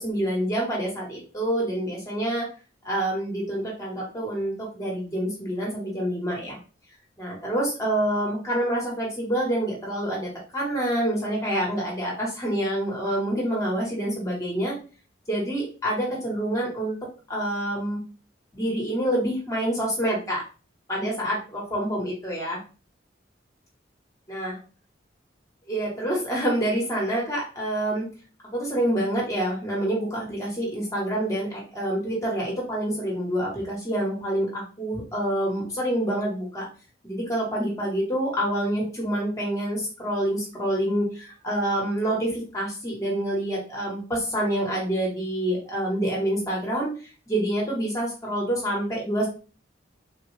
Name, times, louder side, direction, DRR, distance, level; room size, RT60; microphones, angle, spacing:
voice 1, 0.0-2.4 2.8-6.6 7.2-14.7 15.3-17.0 17.3-18.0 18.5-20.4 20.9-22.6 24.3-24.6 25.7-28.1 28.5-36.7 37.0-46.9 47.3-49.3, right 1 dB, 15° left, -3 dB, 0.9 m, -27 dB
3.4 x 2.2 x 3.0 m, 0.36 s
head